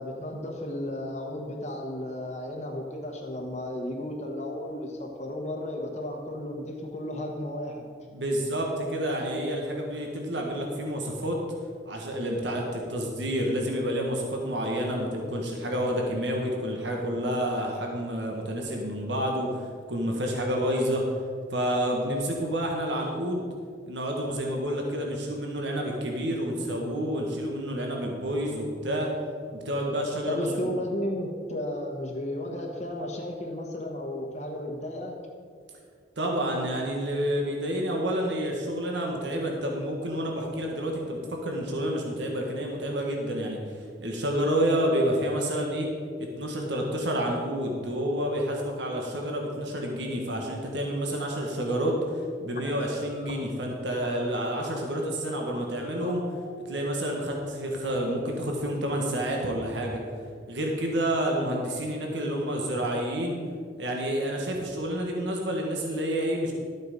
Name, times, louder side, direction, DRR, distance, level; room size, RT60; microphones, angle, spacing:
voice 1, 0.0-7.9 30.3-35.2, left 1 dB, 40° left, -1 dB, 1.2 m, -33 dB
voice 2, 8.1-11.4 11.8-21.1 21.5-23.4 23.9-29.1 29.5-30.7 36.2-45.9 46.2-56.2 56.7-60.0 60.5-63.4 63.8-66.5, equal, 70° right, 0 dB, 1.6 m, -29 dB
sound 1, 51.7-56.7, left 2 dB, 55° left, 1.8 m, -45 dB
12.5 x 8.2 x 5.2 m, 2.1 s
head